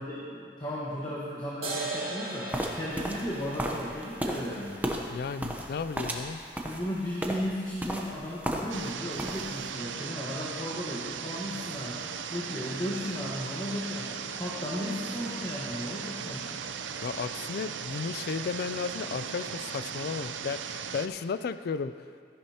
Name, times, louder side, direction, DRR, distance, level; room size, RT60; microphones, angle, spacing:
voice 1, 0.0-4.8 6.6-16.5, equal, 25° left, -6 dB, 1.2 m, -35 dB
sound 1, 1.6-8.6, right 2 dB, 35° right, 2.2 m, -41 dB
sound 2, 2.5-8.9 9.2-9.7, right 1 dB, 10° right, 0.8 m, -35 dB
voice 2, 5.1-6.4 17.0-21.9, left 5 dB, 60° left, 12 dB, 0.3 m, -34 dB
sound 3, 8.7-21.1, right 7 dB, 90° right, 0.5 m, -37 dB
14.0 x 11.0 x 2.9 m, 2.2 s
head